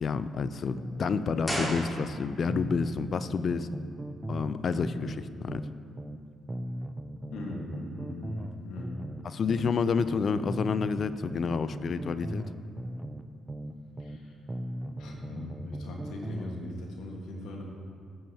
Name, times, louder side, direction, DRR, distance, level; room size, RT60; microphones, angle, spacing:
voice 1, 0.0-3.7 4.3-5.1 5.4-5.6 9.2-12.5, left 5 dB, 50° left, 13 dB, 0.4 m, -29 dB
sound 1, 0.8-2.2 2.5-6.2 6.5-10.2 10.5-14.2 14.5-16.6, right 1 dB, 15° right, 0.5 m, -38 dB
sound 2, 1.4-2.5 2.8-2.9, equal, 15° left, 2.5 m, -34 dB
voice 2, 7.3-9.0 14.0-14.3 14.9-17.6, left 2 dB, 85° left, 0 dB, 1.5 m, -40 dB
14.0 x 8.9 x 2.8 m, 2.2 s
cardioid pair, 90°, 0 cm